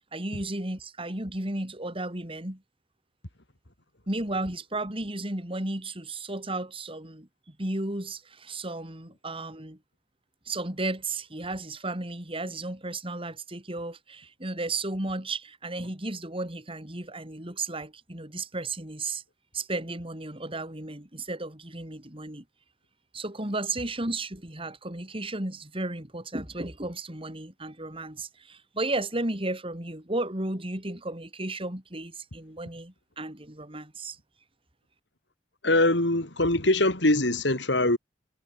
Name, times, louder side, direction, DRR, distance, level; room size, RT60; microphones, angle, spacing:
voice 1, 0.1-2.6 4.1-9.8 10.5-19.2 19.5-22.4 23.1-34.2, right 2 dB, 30° right, 4.2 m, -34 dB
voice 2, 35.6-38.0, left 2 dB, 70° left, 4.0 m, -23 dB
head